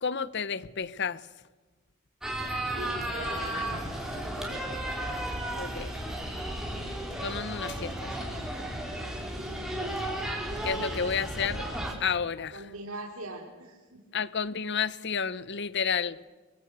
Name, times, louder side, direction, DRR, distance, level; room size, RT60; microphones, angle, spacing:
voice 1, 0.0-1.2 3.5-3.6 5.5-5.9 7.2-8.3 10.6-11.7 12.0-12.6 14.1-16.2, left 6 dB, 55° left, 18 dB, 0.9 m, -31 dB
sound 1, 2.2-11.9, right 1 dB, ahead, 4.3 m, -34 dB
voice 2, 2.7-3.9 4.1-4.6 12.5-14.0, right 2 dB, 90° right, -1 dB, 3.3 m, -42 dB
24.0 x 23.0 x 8.1 m, 1.3 s
head